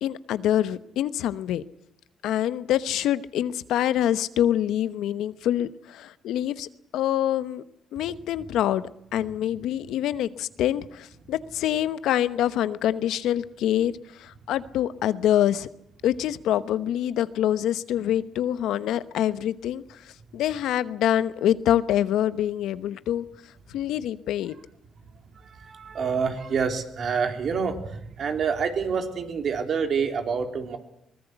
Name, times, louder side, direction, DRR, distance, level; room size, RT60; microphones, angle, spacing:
voice 1, 0.0-1.6 2.2-7.6 7.9-13.9 14.2-15.7 16.0-19.8 20.3-23.2 23.7-24.5, left 11 dB, 85° left, 14 dB, 1.0 m, -25 dB
voice 2, 25.3-30.8, right 6 dB, 55° right, 6 dB, 3.6 m, -27 dB
22.5 x 20.0 x 8.1 m, 0.75 s
cardioid pair, 90°, 0 cm